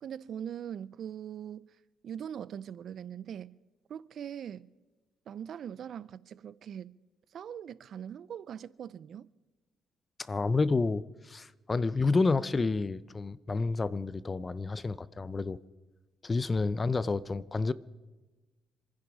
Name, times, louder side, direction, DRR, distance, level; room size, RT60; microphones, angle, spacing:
voice 1, 0.0-1.7 2.0-3.6 3.9-4.7 5.3-6.9 7.3-9.3, right 9 dB, 65° right, 0.5 m, -41 dB
voice 2, 10.2-15.6 16.2-17.7, left 3 dB, 30° left, 0.6 m, -29 dB
27.0 x 10.5 x 4.8 m
cardioid pair, 90°, 0 cm